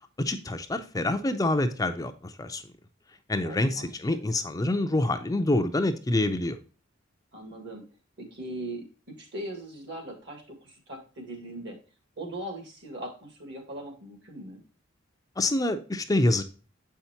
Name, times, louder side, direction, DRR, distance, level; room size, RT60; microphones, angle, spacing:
voice 1, 0.2-2.6 3.3-6.6 15.4-16.4, left 2 dB, 20° left, 7 dB, 0.5 m, -26 dB
voice 2, 3.4-3.9 7.3-7.9 8.2-11.8 12.2-14.6, right 1 dB, 60° right, 3 dB, 1.9 m, -40 dB
7.4 x 5.6 x 2.8 m, 0.35 s
head